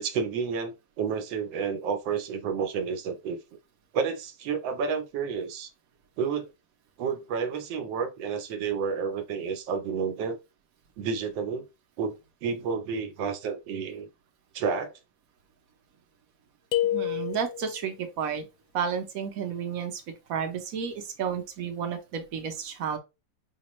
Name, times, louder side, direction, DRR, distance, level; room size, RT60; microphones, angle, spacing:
voice 1, 0.0-3.4 3.9-5.7 6.2-6.5 7.0-10.4 11.0-11.6 12.0-14.1 14.5-14.9 21.2-21.3, right 6 dB, 80° right, 1.4 m, -30 dB
sound 1, 16.7-17.8, left 12 dB, 70° left, 0.9 m, -28 dB
voice 2, 16.9-18.5 18.7-20.0 20.3-23.0, right 7 dB, 60° right, 1.0 m, -31 dB
5.0 x 2.3 x 3.0 m
omnidirectional pair, 2.0 m